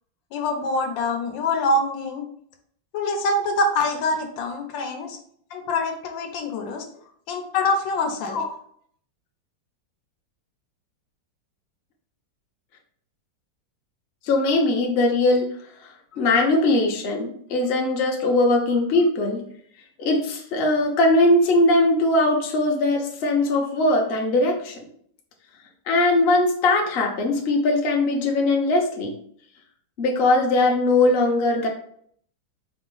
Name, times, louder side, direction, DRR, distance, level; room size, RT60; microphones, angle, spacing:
voice 1, 0.3-2.3 2.9-5.2 5.5-6.8 7.3-8.4, left 2 dB, 80° left, 4 dB, 1.4 m, -25 dB
voice 2, 14.2-15.5 16.2-19.4 20.0-24.8 25.9-29.1 30.0-31.7, left 2 dB, 55° left, 1 dB, 0.7 m, -20 dB
4.7 x 2.0 x 3.8 m, 0.63 s
omnidirectional pair, 2.0 m